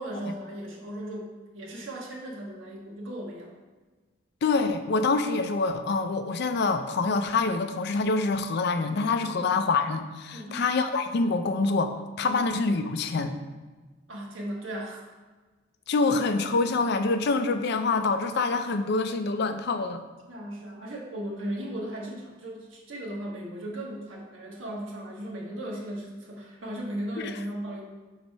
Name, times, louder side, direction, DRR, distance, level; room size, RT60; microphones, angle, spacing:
voice 1, 0.0-3.5 10.3-10.6 14.1-15.1 20.3-27.8, right 1 dB, 75° right, -2 dB, 1.4 m, -36 dB
voice 2, 4.4-13.4 15.9-20.0 27.2-27.3, left 3 dB, 55° left, 8 dB, 0.4 m, -26 dB
4.7 x 4.0 x 5.4 m, 1.3 s
head